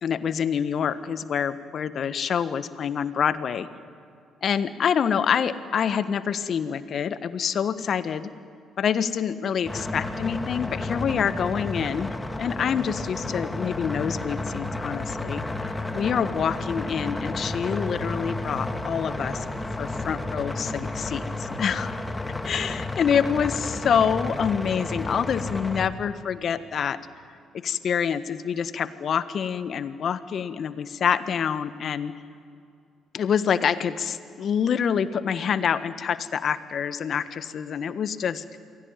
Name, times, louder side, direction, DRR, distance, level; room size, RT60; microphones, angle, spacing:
voice 1, 0.0-3.7 4.4-8.3 8.8-19.4 19.8-22.0 22.4-27.0 27.5-32.1 33.1-38.4, left 7 dB, 55° left, 12 dB, 1.4 m, -26 dB
sound 1, 9.6-25.9, left 2 dB, 15° left, 2.5 m, -32 dB
28.5 x 22.0 x 9.1 m, 2.4 s
hypercardioid pair, 45°, 0 cm